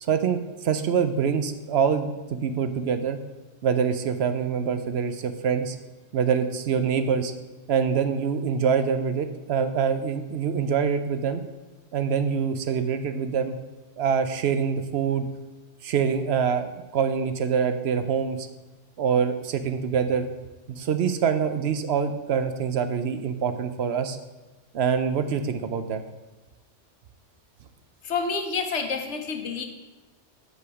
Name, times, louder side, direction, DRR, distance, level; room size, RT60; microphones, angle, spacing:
voice 1, 0.0-3.2 3.6-5.7 6.1-7.3 7.7-11.4 11.9-13.6 14.0-15.2 15.8-18.5 19.0-20.3 20.7-24.2 24.7-26.0, right 7 dB, 65° right, 9 dB, 0.8 m, -25 dB
voice 2, 28.0-29.7, left 5 dB, 70° left, 5 dB, 1.1 m, -28 dB
6.6 x 5.2 x 6.1 m, 1.2 s
omnidirectional pair, 1.2 m